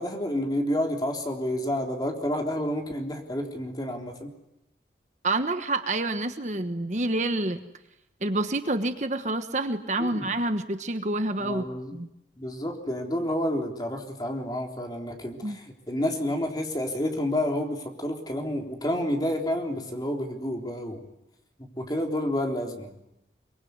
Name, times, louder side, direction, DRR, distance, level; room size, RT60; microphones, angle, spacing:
voice 1, 0.0-4.3 10.0-10.2 11.4-12.0 12.4-21.0 21.8-22.9, left 1 dB, 20° left, 2 dB, 3.7 m, -29 dB
voice 2, 5.2-7.6 8.2-12.1 15.4-15.6, right 2 dB, 40° right, 9 dB, 1.3 m, -28 dB
24.0 x 24.0 x 9.6 m, 0.87 s
head